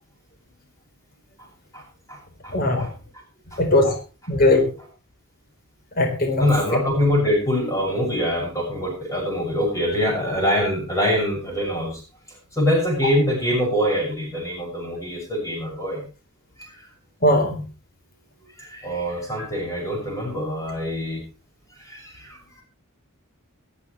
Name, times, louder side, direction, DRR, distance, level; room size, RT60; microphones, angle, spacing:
voice 1, 1.7-2.9 3.5-3.6 6.4-12.0 12.5-16.0 16.6-16.9 18.6-21.2 21.8-22.6, equal, 15° left, -1 dB, 6.7 m, -24 dB
voice 2, 2.5-2.9 3.6-3.9 4.3-4.7 6.0-6.5 17.2-17.6 19.4-19.5, left 1 dB, 45° left, 3 dB, 4.0 m, -19 dB
18.5 x 13.5 x 3.2 m, 0.33 s
head